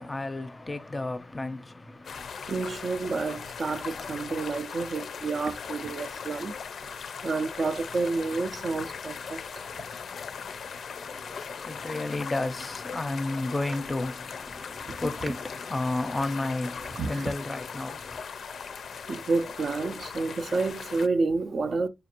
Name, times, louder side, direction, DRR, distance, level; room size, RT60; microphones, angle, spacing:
voice 1, 0.0-2.3 11.0-18.2, left 2 dB, 20° left, 0.5 m, -32 dB
sound 1, 2.0-21.1, left 6 dB, 75° left, 0.4 m, -39 dB
voice 2, 2.5-6.5 7.2-9.4 14.9-15.0 16.9-17.3 19.1-21.9, right 3 dB, 55° right, 0.4 m, -29 dB
4.9 x 2.4 x 2.8 m
wide cardioid pair, 120°, 0 cm